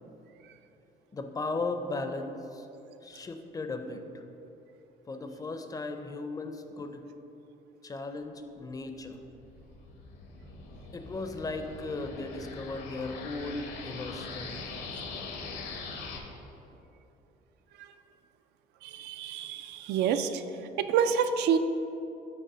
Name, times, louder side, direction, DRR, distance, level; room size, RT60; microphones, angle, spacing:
voice 1, 1.1-2.7 3.0-4.3 5.1-7.0 7.8-9.2 10.9-14.8, left 3 dB, 20° left, 6 dB, 0.4 m, -37 dB
sound 1, 8.9-16.2, left 4 dB, 80° left, 0.9 m, -42 dB
voice 2, 18.8-20.4 20.8-21.6, right 7 dB, 80° right, 9 dB, 0.4 m, -27 dB
5.4 x 4.1 x 6.0 m, 3.0 s
cardioid pair, 110°, 17 cm